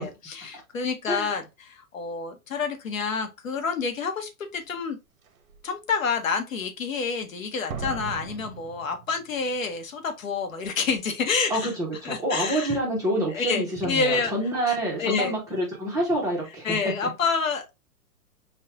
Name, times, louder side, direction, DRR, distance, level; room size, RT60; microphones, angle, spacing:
voice 1, 0.0-5.0 5.6-11.7 12.0-12.8 13.3-14.3 14.7-15.3 16.6-17.7, left 5 dB, 60° left, 0.9 m, -28 dB
Slam, 4.5-4.6 5.2-5.6 7.7-9.6 9.8-9.9, right 6 dB, 65° right, 0.7 m, -38 dB
voice 2, 11.5-16.8, right 1 dB, 5° right, 0.8 m, -27 dB
5.3 x 2.4 x 2.3 m
figure-of-eight pair, 115°, 45 cm